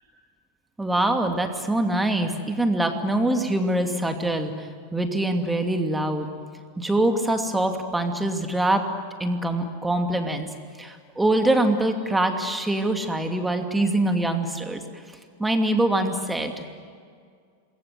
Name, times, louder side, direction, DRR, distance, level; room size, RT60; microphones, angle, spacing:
voice 1, 0.8-6.3 6.8-8.9 9.2-10.5 10.8-14.8 15.4-16.7, right 1 dB, 5° right, 5 dB, 2.6 m, -24 dB
27.0 x 22.5 x 9.4 m, 2.1 s
figure-of-eight pair, 90°, 0 cm